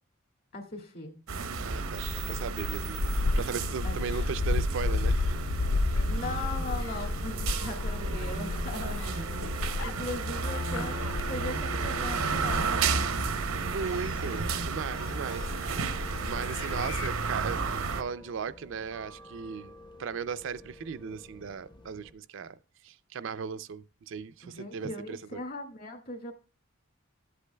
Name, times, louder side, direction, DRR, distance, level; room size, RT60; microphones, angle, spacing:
voice 1, 0.5-1.2 3.8-4.0 6.1-13.0 24.4-26.3, left 2 dB, 45° left, 1.9 m, -39 dB
sound 1, 1.3-18.0, right 4 dB, 85° right, 0.7 m, -33 dB
Gull seagull, 1.6-17.1, left 3 dB, 70° left, 0.4 m, -33 dB
voice 2, 1.6-5.3 13.6-15.4 15.7-17.7 18.0-19.7 20.0-22.6 22.8-25.4, right 6 dB, 60° right, 0.4 m, -37 dB
sound 2, 4.9-22.1, left 1 dB, 20° left, 0.6 m, -49 dB
13.0 x 8.2 x 2.2 m
head